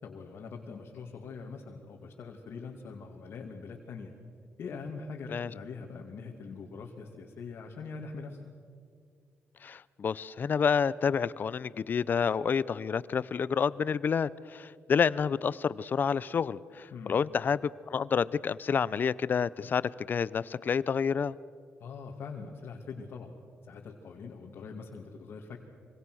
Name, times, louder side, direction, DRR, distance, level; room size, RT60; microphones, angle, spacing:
voice 1, 0.0-4.1 4.6-8.4 16.9-17.2 21.8-23.3 23.7-25.6, left 4 dB, 70° left, -1 dB, 2.4 m, -43 dB
voice 2, 9.6-21.4, left 6 dB, 50° left, 19 dB, 0.6 m, -29 dB
25.5 x 25.5 x 6.3 m, 2.2 s
cardioid pair, 90°, 4 cm